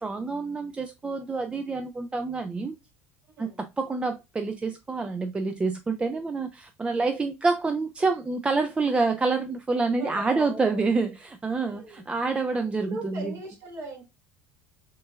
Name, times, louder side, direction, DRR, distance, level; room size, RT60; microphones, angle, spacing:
voice 1, 0.0-2.8 3.4-13.3, right 3 dB, 15° right, 0.4 m, -27 dB
voice 2, 10.0-10.9 11.6-12.0 12.8-14.0, right 2 dB, 45° right, 2.0 m, -39 dB
6.4 x 2.7 x 2.4 m
figure-of-eight pair, 65°, 7 cm